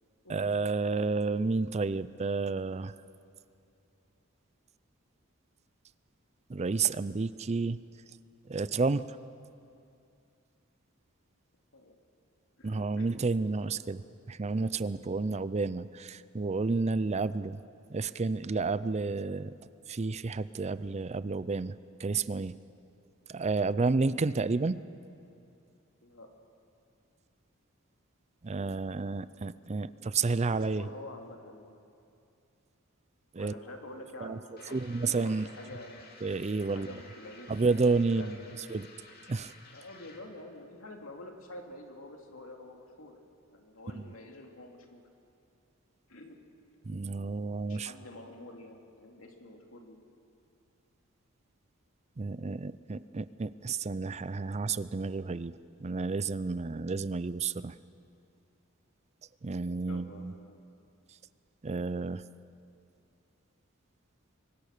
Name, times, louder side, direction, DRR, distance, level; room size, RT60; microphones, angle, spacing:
voice 1, 0.3-2.9 6.5-7.8 8.5-9.0 12.6-14.0 14.3-17.6 17.9-19.5 19.9-21.7 22.0-22.5 23.3-24.8 28.4-30.9 33.3-33.5 34.2-34.4 34.7-35.5 36.2-36.9 37.5-38.3 38.7-38.9 39.3-39.5 43.9-44.0 46.9-47.9 52.2-55.5 55.8-57.7 59.4-60.3 61.6-62.2, right 4 dB, 30° right, 16 dB, 0.5 m, -30 dB
voice 2, 12.6-13.2 26.0-26.3 30.5-31.7 33.4-36.1 36.7-38.8 39.4-39.5 39.7-43.1 43.5-45.0 46.1-46.4 46.9-47.0 47.6-50.0 59.9-60.6, left 1 dB, 70° left, 2 dB, 2.8 m, -48 dB
sound 1, 34.6-40.4, left 3 dB, 45° left, 2.6 m, -53 dB
25.0 x 23.5 x 6.7 m, 2.5 s
head